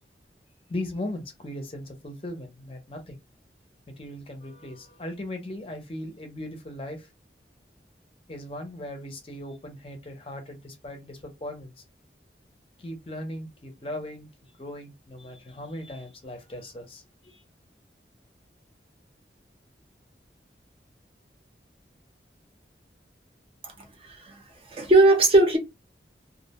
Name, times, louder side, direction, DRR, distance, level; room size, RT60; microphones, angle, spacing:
voice 1, 0.7-3.2 3.9-7.1 8.3-11.8 12.8-17.4, left 1 dB, 30° left, 0.6 m, -38 dB
voice 2, 24.7-25.6, right 2 dB, 30° right, 0.6 m, -17 dB
2.4 x 2.1 x 2.8 m
head